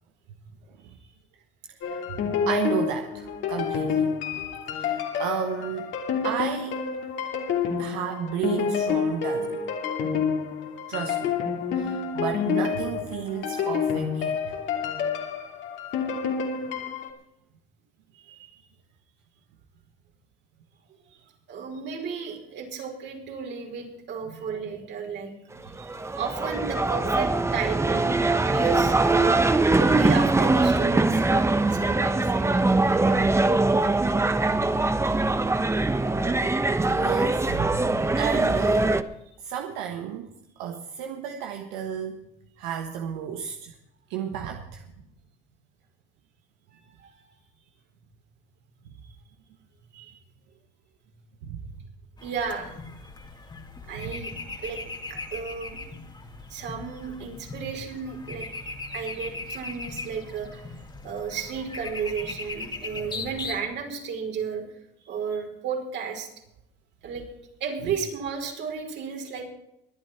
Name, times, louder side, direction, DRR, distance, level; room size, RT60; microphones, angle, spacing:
sound 1, 1.8-17.1, left 6 dB, 65° left, 3.0 m, -28 dB
voice 1, 1.8-4.1 4.7-6.8 7.8-9.6 10.9-11.4 11.7-14.6 24.3-24.5 34.5-34.7 35.1-35.4 37.0-38.9 39.4-40.3 40.6-42.3 42.6-43.8 44.1-44.8 51.4-51.6 53.9-54.1, right 9 dB, 85° right, 4 dB, 1.4 m, -33 dB
voice 2, 18.1-18.6 21.5-25.3 25.6-29.4 29.8-33.2 47.0-47.1 49.9-50.2 52.2-52.7 53.9-54.8 55.1-55.8 56.5-58.5 58.9-60.6 61.0-64.7 65.1-66.3 67.0-67.2 67.6-69.5, right 6 dB, 60° right, 2 dB, 5.2 m, -33 dB
sound 2, 25.5-39.0, right 2 dB, 15° right, 1.1 m, -22 dB
sound 3, 52.2-63.6, left 3 dB, 20° left, 2.4 m, -38 dB
23.0 x 9.6 x 4.5 m, 0.81 s
supercardioid pair, 85°, 21 cm